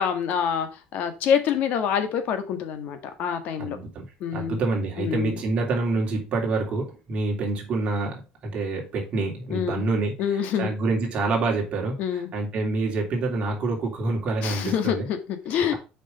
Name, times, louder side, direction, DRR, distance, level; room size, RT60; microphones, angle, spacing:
voice 1, 0.0-3.8 4.2-4.6 5.0-5.4 9.5-9.8 10.2-10.7 12.0-12.3 14.4-15.7, left 8 dB, 55° left, 8 dB, 1.6 m, -26 dB
voice 2, 3.6-4.0 4.3-15.1, right 3 dB, 40° right, 0 dB, 2.8 m, -27 dB
6.7 x 5.4 x 5.1 m, 0.32 s
cardioid pair, 160°, 3 cm